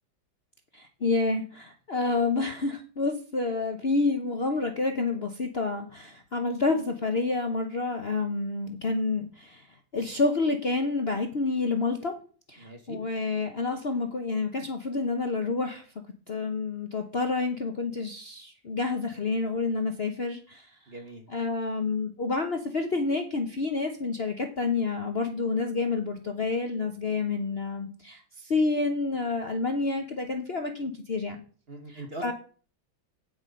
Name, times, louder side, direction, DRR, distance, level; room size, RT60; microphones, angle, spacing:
voice 1, 0.7-9.7 9.9-12.1 12.5-15.8 16.3-20.7 21.3-31.4 31.9-32.3, left 3 dB, 45° left, 4 dB, 0.9 m, -29 dB
voice 2, 12.6-13.0 20.9-21.2 31.7-32.3, right 2 dB, 35° right, 4 dB, 1.1 m, -41 dB
9.1 x 7.5 x 5.2 m, 0.41 s
omnidirectional pair, 2.1 m